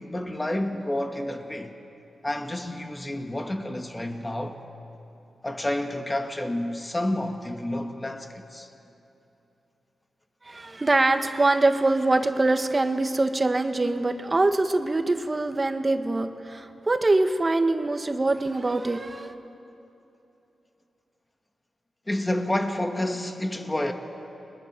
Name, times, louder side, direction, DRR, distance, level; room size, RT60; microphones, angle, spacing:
voice 1, 0.0-1.7 2.2-4.6 5.4-8.7 22.1-23.9, left 1 dB, 20° left, 2.3 m, -29 dB
voice 2, 10.4-19.3, right 2 dB, 30° right, 1.6 m, -24 dB
30.0 x 22.0 x 6.9 m
cardioid pair, 65°, 0 cm